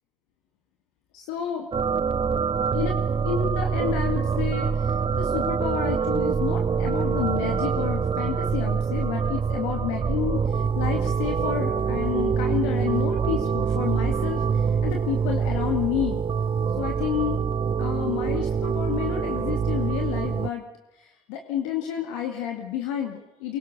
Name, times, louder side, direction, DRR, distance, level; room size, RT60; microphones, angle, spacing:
voice 1, 1.1-1.7 2.7-3.0 3.2-16.3 16.8-17.4 17.8-20.6 21.0-23.6, left 9 dB, 90° left, 3 dB, 2.0 m, -30 dB
sound 1, 1.7-20.5, right 6 dB, 35° right, 0.7 m, -25 dB
24.0 x 21.5 x 6.4 m, 1.0 s
hypercardioid pair, 60°, 16 cm